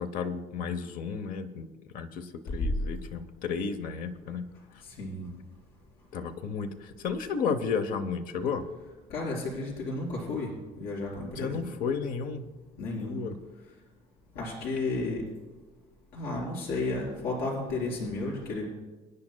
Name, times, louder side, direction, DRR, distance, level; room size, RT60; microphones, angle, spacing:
voice 1, 0.0-1.7 1.9-4.5 6.1-8.6 11.4-12.5 13.0-13.4, left 5 dB, 60° left, 10 dB, 0.9 m, -33 dB
voice 2, 5.0-5.3 9.1-10.5 10.8-11.6 12.8-13.2 14.3-15.2 16.1-18.7, left 2 dB, 85° left, -4 dB, 4.3 m, -32 dB
24.5 x 9.8 x 2.2 m, 1.2 s
cardioid pair, 160°, 16 cm